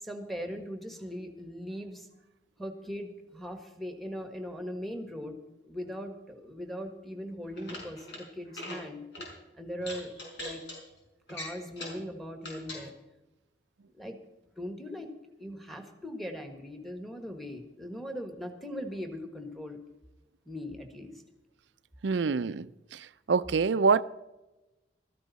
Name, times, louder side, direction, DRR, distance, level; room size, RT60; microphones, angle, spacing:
voice 1, 0.0-2.1 2.6-5.4 5.7-9.0 9.6-10.6 11.3-12.9 13.9-14.2 14.6-15.1 15.4-19.8 20.4-21.1, equal, ahead, 1.5 m, -40 dB
sound 1, 7.4-8.2 8.5-8.8 9.1-9.3 9.8-10.8 11.3-12.0 12.4-12.8, left 1 dB, 75° left, 5.4 m, -41 dB
voice 2, 22.0-24.0, right 5 dB, 80° right, 0.5 m, -26 dB
15.5 x 14.0 x 4.1 m
head